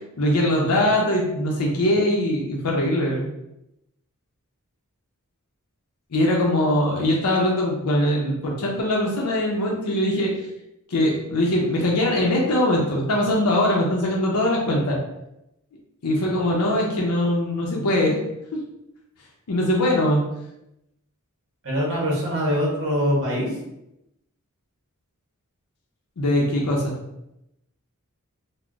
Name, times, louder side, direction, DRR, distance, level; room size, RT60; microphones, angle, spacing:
voice 1, 0.2-3.3 6.1-10.3 10.9-15.0 16.0-18.2 19.5-20.2 26.2-27.0, left 1 dB, 80° left, -1 dB, 0.6 m, -21 dB
voice 2, 21.6-23.5, equal, 60° right, -3 dB, 0.8 m, -23 dB
2.2 x 2.1 x 3.7 m, 0.85 s
head